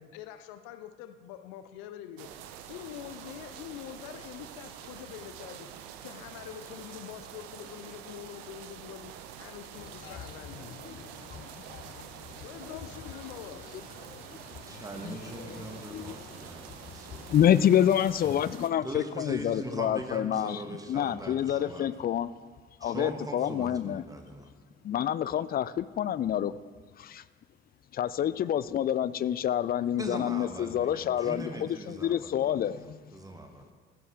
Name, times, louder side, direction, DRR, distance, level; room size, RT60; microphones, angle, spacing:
voice 1, 0.0-9.1 9.4-10.8 11.3-12.1 12.4-13.6, left 11 dB, 65° left, 10 dB, 0.7 m, -45 dB
sound 1, 2.2-18.7, right 9 dB, 65° right, 0.7 m, -46 dB
voice 2, 11.3-12.1 12.4-12.5 14.7-16.8 17.1-20.6 20.9-22.3 22.8-24.0 24.8-26.5 27.0-27.2 27.9-33.0, left 10 dB, 30° left, 16 dB, 0.4 m, -28 dB
voice 3, 14.7-17.4 18.8-21.9 22.8-24.5 30.0-33.7, right 1 dB, 10° right, 4 dB, 1.5 m, -41 dB
15.0 x 6.8 x 3.7 m, 1.5 s
figure-of-eight pair, 40°, 32 cm